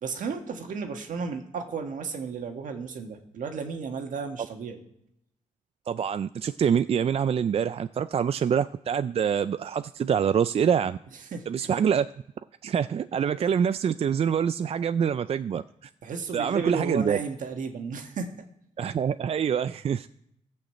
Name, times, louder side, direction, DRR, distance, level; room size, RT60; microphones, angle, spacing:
voice 1, 0.0-4.8 11.2-11.7 16.0-18.3, right 5 dB, 75° right, 4 dB, 1.6 m, -33 dB
voice 2, 5.9-11.0 11.5-12.1 12.6-15.9 16.3-17.2 18.8-20.1, right 7 dB, 50° right, 13 dB, 0.4 m, -25 dB
14.5 x 6.5 x 7.7 m, 0.79 s
cardioid pair, 80°, 13 cm